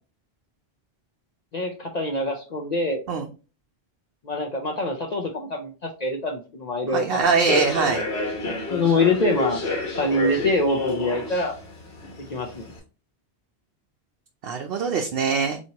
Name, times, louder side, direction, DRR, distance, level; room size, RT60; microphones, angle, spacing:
voice 1, 1.5-3.0 4.2-7.3 8.7-9.6 10.0-11.6 12.2-12.7, left 2 dB, 50° left, 1 dB, 0.6 m, -25 dB
voice 2, 6.9-8.0 14.4-15.6, right 5 dB, 65° right, 3 dB, 0.7 m, -23 dB
Human voice / Subway metro underground, 7.2-12.8, left 3 dB, 80° left, 1.5 m, -29 dB
4.3 x 2.9 x 2.8 m, 0.35 s
omnidirectional pair, 1.1 m